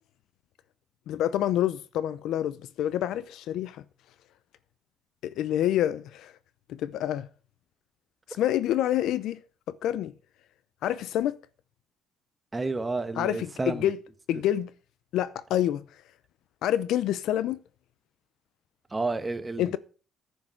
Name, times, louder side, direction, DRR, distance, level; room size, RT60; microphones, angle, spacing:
voice 1, 1.1-3.8 5.2-6.3 6.7-7.3 8.4-9.4 9.7-10.1 10.8-11.4 13.2-14.0 14.3-14.7 15.1-15.8 16.6-17.6 19.6-19.8, left 12 dB, 85° left, 0.6 m, -27 dB
voice 2, 12.5-13.9 18.9-19.8, right 3 dB, 15° right, 1.2 m, -31 dB
10.0 x 6.6 x 7.7 m
cardioid pair, 140°, 0 cm